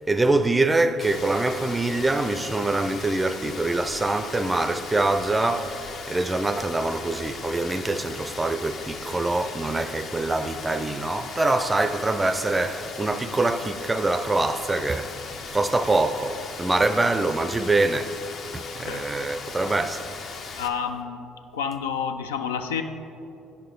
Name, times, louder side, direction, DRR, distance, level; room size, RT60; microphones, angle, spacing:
voice 1, 0.1-15.1 15.5-18.2 18.5-20.1, right 2 dB, 20° right, 0.4 m, -24 dB
Rain, 1.0-20.7, left 5 dB, 55° left, 0.7 m, -38 dB
voice 2, 20.6-21.3 21.5-22.8, left 7 dB, 85° left, 0.3 m, -29 dB
10.0 x 4.6 x 3.9 m
hypercardioid pair, 60°, 0 cm